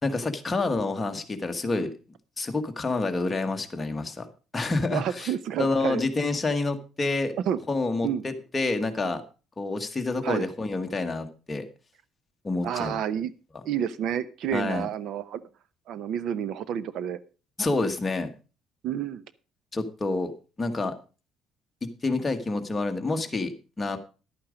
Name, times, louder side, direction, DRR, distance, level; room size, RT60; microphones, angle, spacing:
voice 1, 0.0-1.9 2.4-4.3 4.5-5.3 5.6-7.3 7.7-9.2 9.6-11.7 12.4-13.0 14.5-14.9 17.6-18.3 19.7-20.3 20.6-20.9 21.8-24.0, left 3 dB, 15° left, 5 dB, 1.3 m, -28 dB
voice 2, 4.9-6.0 7.5-7.6 8.0-8.2 10.2-10.4 12.6-13.3 13.6-15.4 15.9-17.2 18.8-19.2, right 9 dB, 60° right, 17 dB, 0.7 m, -29 dB
11.5 x 8.8 x 5.0 m, 0.33 s
cardioid pair, 145°, 0 cm